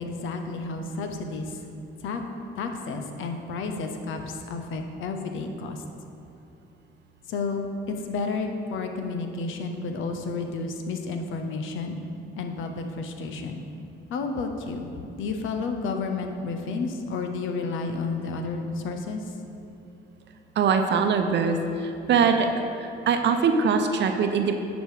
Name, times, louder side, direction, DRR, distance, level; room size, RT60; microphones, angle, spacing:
voice 1, 0.0-1.6 2.0-2.2 2.6-5.8 7.3-12.0 12.4-13.6 14.1-14.9 15.2-19.2, left 4 dB, 85° left, 5 dB, 0.8 m, -31 dB
voice 2, 20.6-22.5 22.8-24.6, right 5 dB, 65° right, 6 dB, 0.7 m, -22 dB
10.0 x 5.2 x 4.9 m, 2.9 s
cardioid pair, 90°, 20 cm